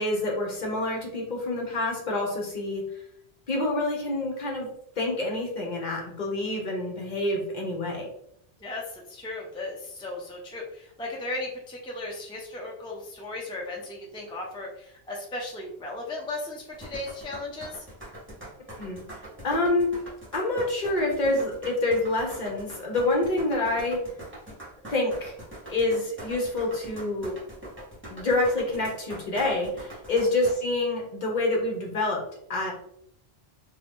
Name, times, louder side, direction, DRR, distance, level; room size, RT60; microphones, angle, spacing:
voice 1, 0.0-2.8 3.5-4.7 5.0-8.1 18.8-19.0 19.4-19.9 20.3-24.0 24.9-25.3 25.7-27.3 28.1-32.2 32.5-32.7, left 2 dB, 50° left, -1 dB, 0.8 m, -27 dB
voice 2, 8.6-17.8, left 2 dB, 5° left, -2 dB, 0.4 m, -36 dB
sound 1, 16.7-30.5, right 1 dB, 10° right, 1.0 m, -42 dB
2.6 x 2.2 x 3.5 m, 0.70 s
omnidirectional pair, 1.1 m